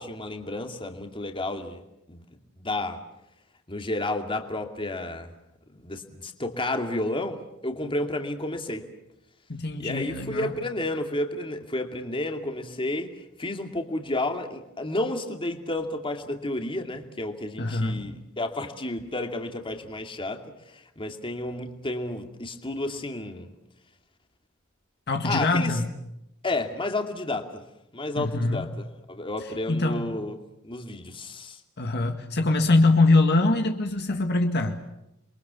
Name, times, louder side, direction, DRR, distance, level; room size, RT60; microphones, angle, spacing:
voice 1, 0.0-1.8 2.1-2.2 2.6-3.0 3.7-5.3 5.7-8.8 9.8-13.1 13.4-23.5 25.2-25.8 26.4-27.6 27.9-30.4 30.6-31.6, left 2 dB, 25° left, 5 dB, 2.5 m, -31 dB
voice 2, 9.5-10.5 17.6-18.1 25.1-25.9 28.2-28.7 29.7-30.1 31.8-34.8, left 2 dB, 50° left, 5 dB, 1.9 m, -23 dB
29.0 x 23.5 x 6.9 m, 0.88 s
head